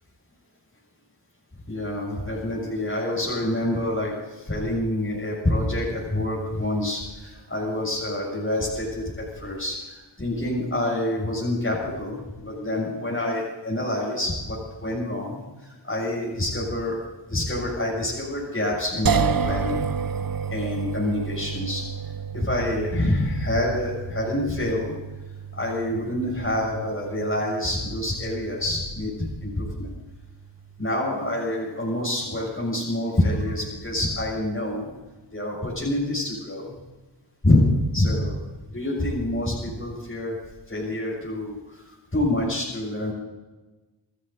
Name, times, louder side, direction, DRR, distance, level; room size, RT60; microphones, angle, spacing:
voice 1, 1.7-17.0 17.3-19.9 20.5-21.8 22.3-24.9 25.5-29.9 30.8-34.9 35.3-36.7 37.4-37.7 37.9-38.4 38.7-40.4 40.7-43.1, left 1 dB, 25° left, -5 dB, 7.0 m, -27 dB
sound 1, 19.1-32.1, right 7 dB, 45° right, 0.8 m, -32 dB
28.0 x 12.5 x 4.0 m, 1.2 s
cardioid pair, 45°, 47 cm